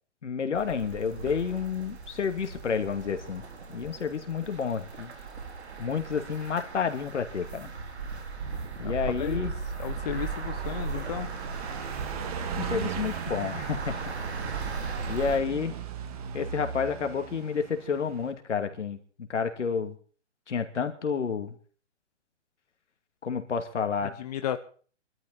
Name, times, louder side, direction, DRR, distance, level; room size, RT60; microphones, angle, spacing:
voice 1, 0.2-3.4 3.7-5.1 5.8-7.7 8.8-9.5 12.6-13.9 15.1-15.7 16.3-19.0 19.3-20.0 20.5-21.5 23.2-24.1, left 6 dB, 75° left, 7 dB, 2.6 m, -30 dB
sound 1, 0.5-15.4, right 4 dB, 65° right, 4.2 m, -37 dB
voice 2, 9.8-11.3 24.0-24.6, left 11 dB, 35° left, 8 dB, 1.0 m, -34 dB
Car passing by, 9.9-18.3, right 8 dB, 30° right, 1.9 m, -39 dB
23.0 x 13.0 x 4.1 m, 0.42 s
hypercardioid pair, 160°, 35 cm